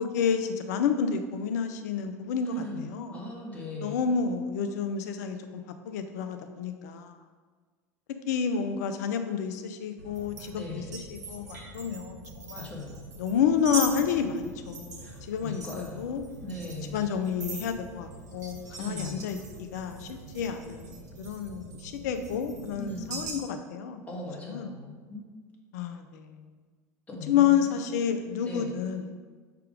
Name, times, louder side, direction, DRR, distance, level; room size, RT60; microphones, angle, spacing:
voice 1, 0.0-3.1 3.8-7.2 8.3-10.8 11.1-12.7 13.2-16.2 16.9-24.0 24.5-24.7 25.7-26.4 27.3-29.0, left 7 dB, 75° left, 8 dB, 0.6 m, -30 dB
voice 2, 2.5-4.0 10.5-11.0 12.6-13.1 15.0-16.1 16.4-17.1 18.8-19.2 22.8-23.2 24.1-25.3 27.1-27.8 28.4-28.7, left 2 dB, 15° left, -3 dB, 1.8 m, -39 dB
sound 1, 10.0-23.3, right 3 dB, 90° right, 1.0 m, -41 dB
5.8 x 3.6 x 5.0 m, 1.5 s
hypercardioid pair, 85°, 9 cm